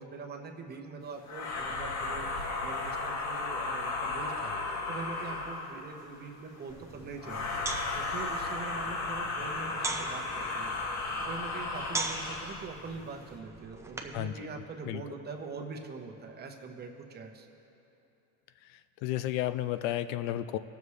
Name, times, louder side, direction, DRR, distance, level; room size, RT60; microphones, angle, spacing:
voice 1, 0.0-4.5 4.9-7.5 7.9-10.7 11.2-17.5, right 4 dB, 30° right, 2 dB, 1.1 m, -43 dB
sound 1, 1.3-5.8 7.2-12.7, left 3 dB, 50° left, 1.6 m, -34 dB
sound 2, 6.7-14.3, right 2 dB, 10° right, 0.8 m, -41 dB
voice 2, 14.1-14.5 14.9-15.0 19.0-20.6, left 13 dB, 65° left, 12 dB, 0.5 m, -32 dB
20.0 x 7.1 x 3.2 m, 2.9 s
supercardioid pair, 115°, 34 cm